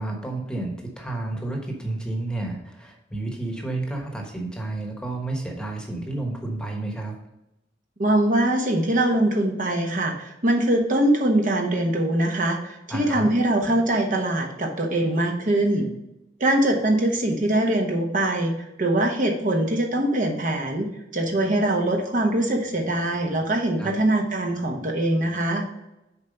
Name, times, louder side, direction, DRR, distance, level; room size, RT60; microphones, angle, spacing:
voice 1, 0.0-7.1 12.9-13.3 23.8-23.9, right 2 dB, 5° left, 1 dB, 1.2 m, -31 dB
voice 2, 8.0-15.9 16.4-18.5 18.8-25.6, right 1 dB, 45° right, 2 dB, 1.1 m, -22 dB
7.2 x 4.5 x 5.2 m, 0.90 s
head